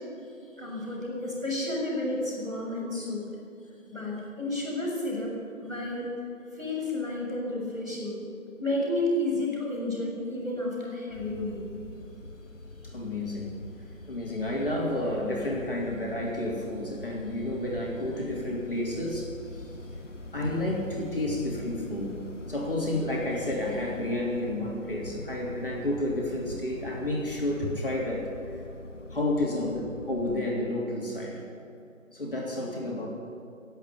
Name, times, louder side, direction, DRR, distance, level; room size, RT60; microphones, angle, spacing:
voice 1, 0.6-3.2 3.9-5.3 5.6-6.1 6.5-8.2 8.6-11.6 20.4-20.5 21.5-21.6, left 1 dB, 5° right, -17 dB, 2.4 m, -31 dB
sound 1, 11.1-30.5, left 2 dB, 60° left, 1.3 m, -44 dB
voice 2, 12.8-13.5 14.1-19.6 20.3-22.2 22.5-28.3 29.1-31.4 32.1-33.1, left 1 dB, 40° left, -3 dB, 3.2 m, -31 dB
19.5 x 8.3 x 8.4 m, 2.6 s
figure-of-eight pair, 165°, 41 cm